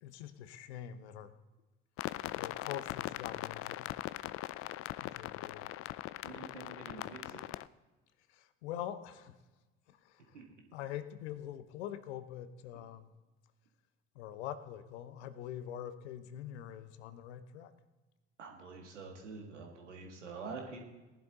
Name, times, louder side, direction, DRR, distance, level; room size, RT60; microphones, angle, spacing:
voice 1, 0.0-1.3 2.4-4.0 5.0-5.7 8.3-9.4 9.9-10.4 10.7-13.1 14.1-17.7, left 10 dB, 70° left, 13 dB, 0.9 m, -44 dB
sound 1, 2.0-7.7, left 16 dB, 40° left, 0.4 m, -41 dB
voice 2, 6.2-7.4 10.3-10.4 18.4-20.8, right 4 dB, 80° right, 1 dB, 1.8 m, -46 dB
18.5 x 11.0 x 3.9 m, 1.2 s
figure-of-eight pair, 60°, 35 cm